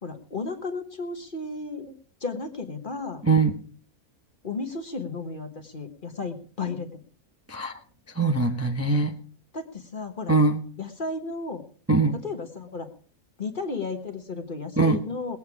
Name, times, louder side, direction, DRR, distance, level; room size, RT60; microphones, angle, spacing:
voice 1, 0.0-1.9 2.2-3.2 4.4-7.0 9.5-10.3 10.8-11.6 12.2-12.9 13.4-15.4, left 3 dB, 35° left, 7 dB, 1.4 m, -33 dB
voice 2, 3.2-3.6 7.5-7.8 8.1-9.2 10.3-10.6 11.9-12.2 14.8-15.0, right 3 dB, 10° right, 4 dB, 0.8 m, -22 dB
20.5 x 8.5 x 4.8 m, 0.41 s
omnidirectional pair, 1.6 m